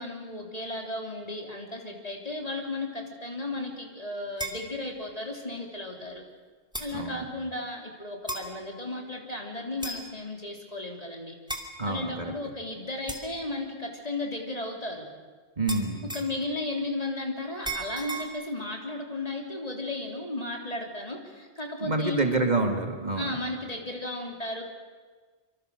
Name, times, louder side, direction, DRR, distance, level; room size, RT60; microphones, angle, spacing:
voice 1, 0.0-6.2 6.8-11.4 11.8-15.1 16.1-22.3 23.2-24.6, left 2 dB, 35° left, 1 dB, 3.6 m, -34 dB
sound 1, 4.4-4.6 5.7-5.8 6.7-6.9 8.3-8.5 9.8-10.1 11.5-11.7 13.1-13.3 15.7-16.4 17.6-18.2, right 2 dB, 5° right, 2.6 m, -35 dB
voice 2, 6.9-7.3 11.8-12.3 15.6-16.1 21.8-23.4, right 2 dB, 40° right, 3 dB, 2.4 m, -27 dB
26.0 x 25.5 x 6.6 m, 1.4 s
omnidirectional pair, 1.1 m